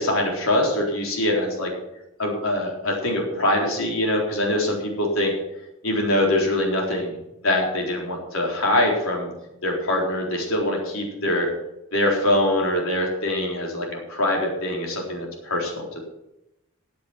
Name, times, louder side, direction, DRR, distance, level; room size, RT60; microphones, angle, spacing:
voice 1, 0.0-1.7 2.2-5.3 5.8-7.1 7.4-9.3 9.6-11.5 11.9-16.0, left 1 dB, 80° left, 0 dB, 3.9 m, -23 dB
14.5 x 8.4 x 6.0 m, 0.90 s
head